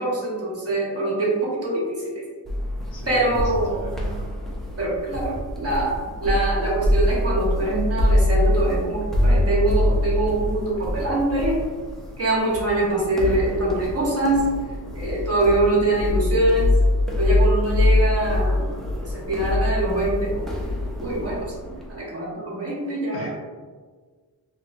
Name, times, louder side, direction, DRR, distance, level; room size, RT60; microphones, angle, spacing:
voice 1, 0.0-2.2 3.1-3.8 4.8-11.6 12.2-14.5 14.9-16.7 17.1-18.7 19.0-20.5 21.0-23.3, right 2 dB, 35° right, -4 dB, 1.0 m, -24 dB
sound 1, 2.5-22.0, left 1 dB, ahead, 0.5 m, -24 dB
voice 2, 2.9-4.3 23.1-23.3, left 1 dB, 90° left, -3 dB, 1.0 m, -38 dB
3.1 x 3.0 x 2.5 m, 1.5 s
wide cardioid pair, 105°, 43 cm